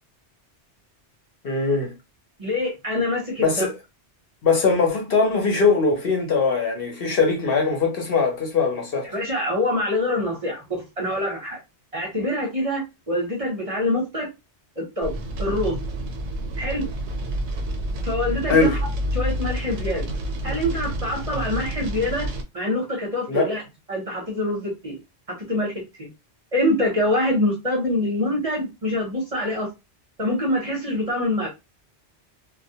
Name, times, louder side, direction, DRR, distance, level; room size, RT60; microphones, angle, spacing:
voice 1, 1.4-1.9 3.4-3.7 4.4-9.1 18.5-18.8 23.3-23.5, left 4 dB, 60° left, 0.9 m, -21 dB
voice 2, 2.4-3.7 9.1-10.6 11.0-11.6 11.9-14.3 14.8-15.1 15.4-15.8 16.6-16.9 18.0-18.8 19.1-20.1 20.4-22.3 22.5-23.6 23.9-25.0 25.5-26.1 26.5-29.7 30.2-31.5, left 1 dB, 35° right, 0.7 m, -25 dB
sound 1, 15.0-22.4, equal, 75° right, 0.9 m, -29 dB
2.2 x 2.2 x 2.7 m
omnidirectional pair, 1.2 m